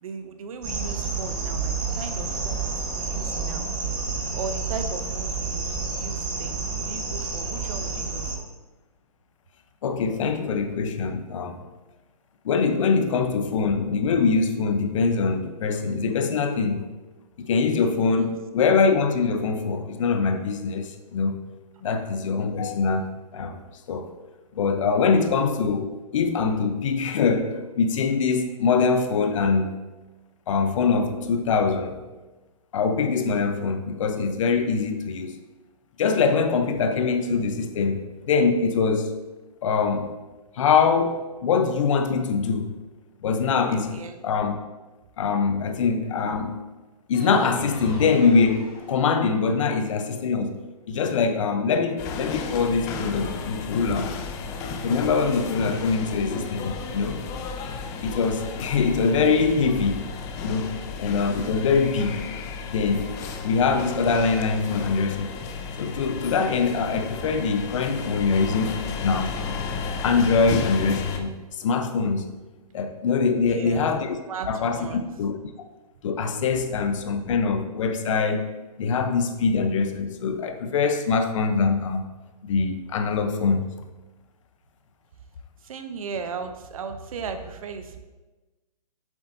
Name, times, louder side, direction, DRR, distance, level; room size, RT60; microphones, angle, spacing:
voice 1, 0.0-3.7 4.3-8.5 18.1-18.3 43.9-44.1 73.5-73.9 74.2-74.5 74.7-75.1 85.6-88.0, right 5 dB, 60° right, 8 dB, 0.9 m, -37 dB
sound 1, 0.6-8.3, right 4 dB, 20° right, 1.4 m, -29 dB
voice 2, 9.8-11.6 12.4-16.8 17.4-21.4 21.8-23.6 23.9-24.1 24.6-29.8 30.5-32.0 32.7-35.4 36.0-39.1 39.6-40.1 40.5-42.7 43.2-44.6 45.2-46.6 47.1-50.6 50.9-54.1 54.7-57.2 58.0-60.1 60.4-60.7 61.0-62.2 62.7-63.1 63.4-65.4 65.8-69.3 70.0-72.3 72.7-74.2 74.5-74.9 75.2-75.4 76.0-78.5 78.8-82.0 82.4-83.7, left 5 dB, 50° left, 7 dB, 0.8 m, -23 dB
sound 2, 47.1-49.5, left 2 dB, 35° left, 2.3 m, -38 dB
sound 3, 52.0-71.2, left 5 dB, 15° left, 0.4 m, -33 dB
8.2 x 7.2 x 2.7 m, 1.2 s
hypercardioid pair, 145°, 20 cm